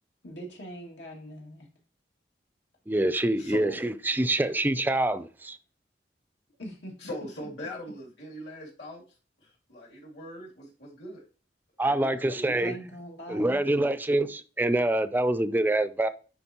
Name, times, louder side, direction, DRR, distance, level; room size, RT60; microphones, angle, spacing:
voice 1, 0.2-1.7 6.6-6.9 12.5-13.6, equal, 90° left, 2.1 m, -42 dB
voice 2, 2.9-5.6 11.8-12.7 13.3-16.1, right 1 dB, 10° right, 0.4 m, -26 dB
voice 3, 3.4-3.8 7.0-9.0 9.4-11.2 11.8-12.5, equal, 70° left, 2.7 m, -41 dB
9.7 x 4.0 x 2.8 m
head